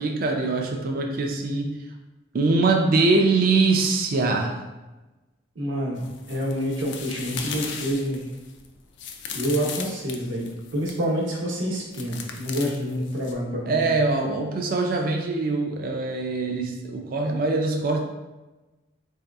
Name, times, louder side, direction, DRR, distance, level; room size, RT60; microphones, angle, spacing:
voice 1, 0.0-1.8 2.3-4.6 13.6-18.0, right 3 dB, 45° right, 2 dB, 0.4 m, -23 dB
voice 2, 5.6-8.2 9.3-13.9, equal, 75° right, -2 dB, 0.8 m, -27 dB
sound 1, 6.0-11.0 11.9-13.3, left 6 dB, 60° left, 0.3 m, -37 dB
3.9 x 2.7 x 2.3 m, 1.1 s
head